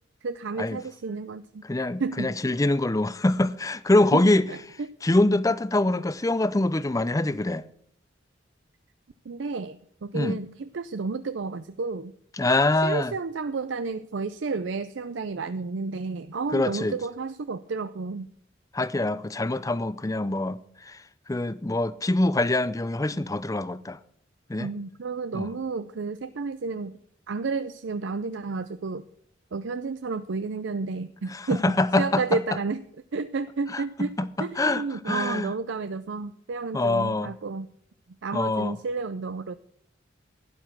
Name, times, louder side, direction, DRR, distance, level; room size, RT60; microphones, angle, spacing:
voice 1, 0.2-1.6 2.0-2.3 4.1-4.2 4.5-4.9 9.3-12.1 12.8-18.3 24.6-27.0 27.3-29.0 29.5-32.8 33.1-34.1 34.4-37.7 38.2-39.5, right 4 dB, 70° right, 0.5 m, -31 dB
voice 2, 1.6-4.5 5.0-7.6 10.1-10.4 12.4-13.1 16.5-17.0 18.7-20.6 20.9-21.0 21.3-24.0 24.5-24.7 25.3-25.5 31.3-32.2 33.7-33.8 34.2-35.5 36.7-37.3 38.3-38.8, left 2 dB, 20° left, 0.5 m, -24 dB
12.0 x 10.5 x 5.9 m
head